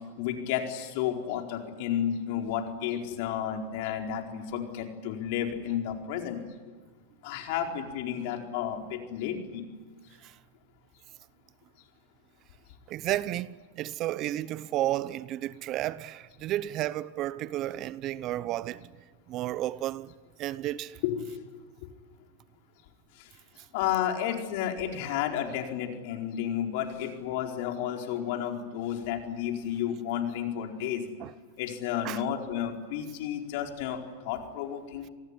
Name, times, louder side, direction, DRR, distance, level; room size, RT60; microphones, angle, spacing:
voice 1, 0.2-6.4 7.2-9.7 21.0-21.3 23.7-31.1 31.6-35.1, left 10 dB, 60° left, 4.5 m, -32 dB
voice 2, 12.9-18.9 19.3-20.1 20.4-21.0 31.2-31.3 32.0-32.2, right 14 dB, 40° right, 0.9 m, -32 dB
28.0 x 19.5 x 10.0 m
hypercardioid pair, 125°, 0 cm